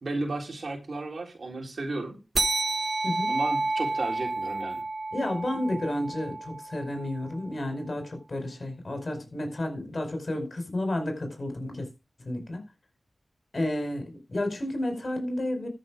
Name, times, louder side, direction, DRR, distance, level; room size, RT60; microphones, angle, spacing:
voice 1, 0.0-2.2 3.3-4.8, right 2 dB, 70° right, 3.6 m, -33 dB
sound 1, 2.3-7.3, right 3 dB, 45° right, 1.2 m, -30 dB
voice 2, 5.1-11.9 12.3-12.6 13.5-15.7, left 1 dB, 55° left, 5.0 m, -31 dB
13.5 x 6.4 x 5.0 m
cardioid pair, 45°, 0 cm